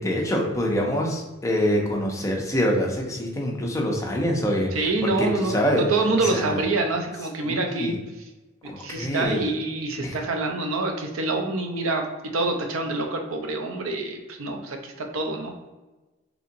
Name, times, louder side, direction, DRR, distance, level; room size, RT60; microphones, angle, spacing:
voice 1, 0.0-5.8 6.2-6.6 7.4-8.0 8.6-9.5 10.0-10.2, equal, 15° left, -1 dB, 0.5 m, -25 dB
voice 2, 4.7-7.9 8.6-12.0 12.3-15.5, right 2 dB, 85° right, 4 dB, 0.6 m, -26 dB
4.0 x 2.8 x 2.6 m, 1.1 s
head